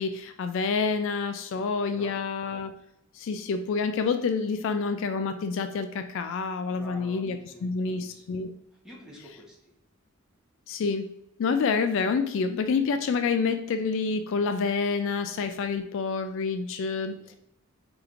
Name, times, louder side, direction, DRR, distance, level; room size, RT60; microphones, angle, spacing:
voice 1, 0.0-2.7 3.2-8.5 10.7-11.1 11.4-17.2, left 5 dB, 60° left, 9 dB, 0.3 m, -28 dB
voice 2, 1.5-2.2 6.7-8.4 8.7-9.7 17.0-17.4, equal, 5° right, -4 dB, 1.0 m, -49 dB
4.8 x 3.0 x 2.5 m, 0.80 s
head